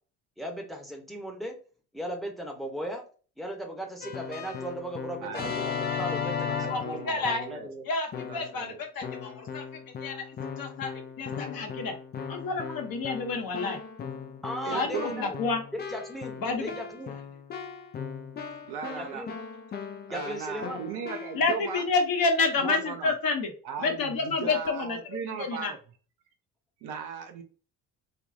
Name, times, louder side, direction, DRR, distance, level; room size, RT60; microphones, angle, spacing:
voice 1, 0.4-1.6 1.9-3.0 3.4-7.9 14.4-15.4 15.9-17.2 19.0-19.3 20.1-20.8, equal, ahead, 2 dB, 0.9 m, -37 dB
Keyboard (musical), 4.0-7.7 8.1-8.6 9.0-21.5, left 6 dB, 20° left, 0.4 m, -37 dB
voice 2, 5.2-5.5 6.1-7.7 8.3-8.8 14.6-15.3 18.7-19.2 20.1-21.8 22.6-23.1 23.6-25.8 26.8-27.4, right 6 dB, 50° right, 5 dB, 0.7 m, -37 dB
voice 3, 6.6-7.5 7.9-9.6 10.0-10.2 10.6-10.9 11.2-11.9 12.3-13.8 14.7-15.6 16.4-16.7 21.3-23.5 23.8-25.0 25.4-25.7, left 3 dB, 45° left, 3 dB, 0.9 m, -29 dB
3.5 x 2.3 x 2.6 m, 0.39 s
figure-of-eight pair, 45°, 50 cm